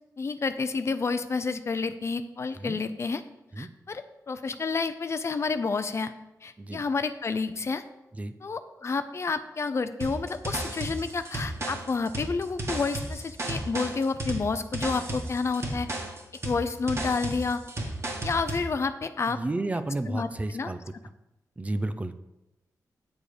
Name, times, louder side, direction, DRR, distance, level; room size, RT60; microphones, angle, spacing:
voice 1, 0.2-3.2 3.6-6.1 6.4-7.8 8.4-15.9 16.4-17.6 18.2-19.4 20.1-20.3 20.5-20.7, left 4 dB, 45° left, 11 dB, 0.6 m, -29 dB
sound 1, 10.0-18.7, right 1 dB, 45° right, 1.8 m, -33 dB
voice 2, 19.3-20.8 21.6-22.1, right 2 dB, 20° right, 11 dB, 0.5 m, -32 dB
9.0 x 7.1 x 5.0 m, 0.95 s
wide cardioid pair, 120°, 7 cm